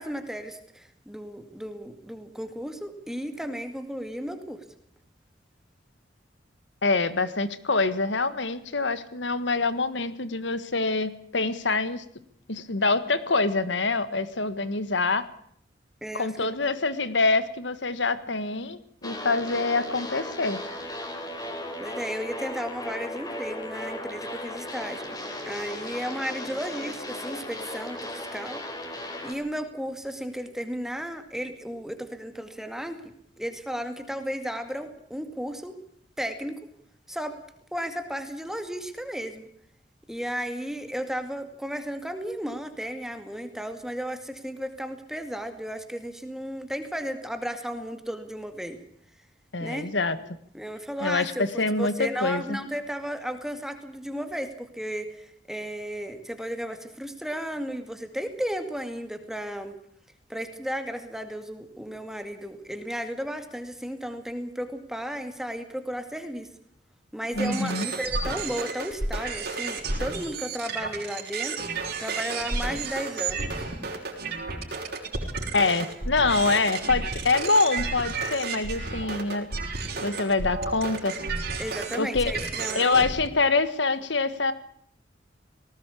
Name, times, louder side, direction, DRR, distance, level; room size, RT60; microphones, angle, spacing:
voice 1, 0.0-4.6 16.0-16.6 21.8-25.2 25.4-28.6 29.2-33.0 33.4-35.7 36.2-36.6 37.1-37.4 37.7-39.5 40.1-48.8 49.6-49.9 50.5-59.7 60.3-66.5 67.1-73.5 81.6-83.0, equal, 5° right, 7 dB, 2.1 m, -34 dB
voice 2, 6.8-12.0 12.5-15.3 16.1-20.6 49.5-50.2 51.0-52.6 67.3-67.9 75.5-79.5 80.0-81.2 82.0-82.3 82.7-84.5, left 3 dB, 75° left, 13 dB, 1.7 m, -25 dB
sound 1, 19.0-29.3, left 1 dB, 20° left, 3.8 m, -36 dB
sound 2, 67.3-83.3, right 3 dB, 55° right, 5.4 m, -32 dB
19.5 x 18.0 x 8.5 m, 0.66 s
head